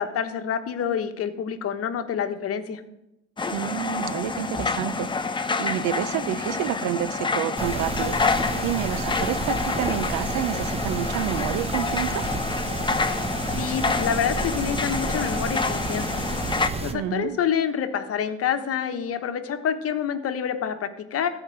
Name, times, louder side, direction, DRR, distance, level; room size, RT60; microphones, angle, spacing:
voice 1, 0.0-2.8 13.6-16.2 16.8-21.3, left 8 dB, 45° left, 8 dB, 1.2 m, -27 dB
sound 1, 3.4-16.7, left 4 dB, 15° left, 0.8 m, -28 dB
voice 2, 3.5-8.2 8.6-12.2 16.9-17.4, right 13 dB, 65° right, 17 dB, 0.6 m, -29 dB
sound 2, 7.6-16.9, right 2 dB, 20° right, 1.1 m, -31 dB
13.0 x 5.0 x 7.7 m, 0.91 s
supercardioid pair, 80°, 32 cm